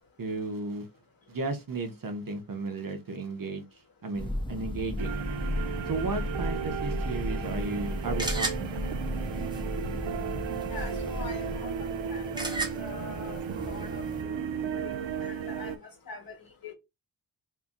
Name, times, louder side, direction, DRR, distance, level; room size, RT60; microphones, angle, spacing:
voice 1, 0.2-0.9 1.3-5.2 5.9-8.9, right 3 dB, 50° right, 0.8 m, -34 dB
Thunder, 4.1-12.0, left 1 dB, 15° left, 0.3 m, -35 dB
sound 1, 5.0-15.8, right 7 dB, 80° right, 0.5 m, -35 dB
sound 2, 7.4-14.2, right 2 dB, 10° right, 0.9 m, -38 dB
voice 2, 10.7-14.4 14.7-16.4 16.6-16.7, left 4 dB, 50° left, 1.5 m, -44 dB
2.7 x 2.6 x 3.7 m
wide cardioid pair, 105°, 45 cm